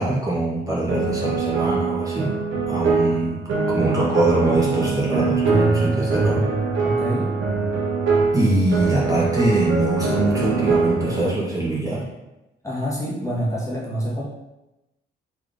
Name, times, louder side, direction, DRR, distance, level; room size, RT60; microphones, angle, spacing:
voice 1, 0.0-2.4 2.7-3.4 3.7-6.5 8.3-12.1, right 2 dB, 15° right, -6 dB, 0.9 m, -23 dB
sound 1, 0.9-11.3, right 4 dB, 75° right, 0.9 m, -23 dB
voice 2, 6.8-7.3 12.6-14.2, equal, 15° left, -6 dB, 1.1 m, -26 dB
3.5 x 3.2 x 2.5 m, 0.98 s
cardioid pair, 80°, 20 cm